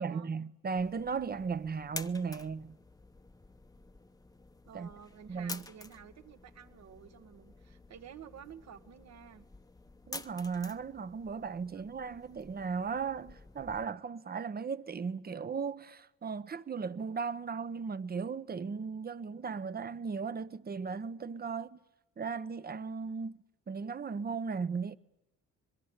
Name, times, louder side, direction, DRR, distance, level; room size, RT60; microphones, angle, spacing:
voice 1, 0.0-2.8 4.7-4.9 5.3-5.6 10.1-21.8 22.2-25.0, right 5 dB, 30° right, 0.9 m, -36 dB
sound 1, 0.8-13.8, left 2 dB, 10° left, 1.0 m, -50 dB
voice 2, 4.6-9.5, right 8 dB, 60° right, 1.7 m, -52 dB
24.5 x 22.0 x 8.1 m
cardioid pair, 90°, 30 cm